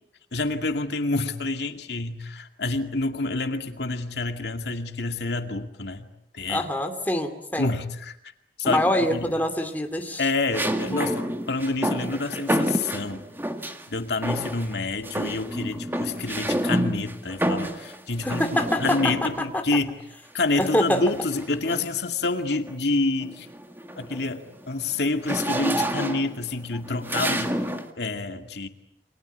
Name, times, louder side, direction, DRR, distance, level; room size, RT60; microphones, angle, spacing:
voice 1, 0.3-6.0 6.3-6.7 7.6-8.2 8.6-8.8 9.1-9.3 10.2-13.3 13.9-19.9 20.3-23.5 24.0-27.6 28.0-28.7, left 3 dB, 75° left, 6 dB, 2.3 m, -28 dB
voice 2, 6.5-7.7 8.6-10.2 10.9-11.2 18.2-19.5 20.6-21.0, left 1 dB, 10° left, 5 dB, 2.5 m, -25 dB
sound 1, 8.7-9.2 10.5-13.9 14.2-14.8 15.0-19.5 20.6-22.0 22.5-22.8 23.1-27.9, right 1 dB, 10° right, 1.9 m, -29 dB
29.0 x 25.0 x 8.2 m, 0.77 s
head